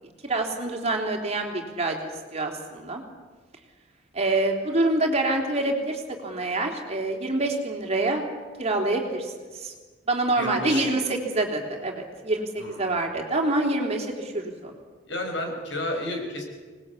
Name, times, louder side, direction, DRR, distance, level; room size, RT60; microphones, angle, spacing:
voice 1, 0.0-2.0 2.3-3.0 4.1-8.3 8.6-9.7 10.1-14.7, right 2 dB, 35° right, 2 dB, 3.5 m, -26 dB
voice 2, 10.4-11.0 12.6-12.8 15.1-16.4, left 1 dB, 70° left, 3 dB, 5.6 m, -31 dB
26.0 x 20.0 x 8.5 m, 1.4 s
head